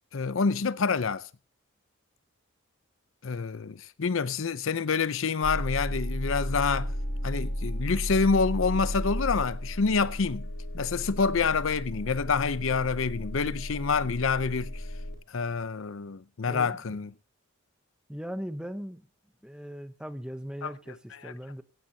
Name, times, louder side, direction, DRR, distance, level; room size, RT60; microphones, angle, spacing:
voice 1, 0.1-1.3 3.2-6.9 7.2-10.5 10.7-14.9 15.3-17.1 20.6-21.3, left 5 dB, 70° left, 0.6 m, -27 dB
sound 1, 5.4-15.1, equal, 55° left, 4.5 m, -34 dB
voice 2, 16.5-17.0 18.1-19.1 19.4-21.6, equal, 5° right, 0.9 m, -39 dB
16.0 x 15.5 x 2.8 m
head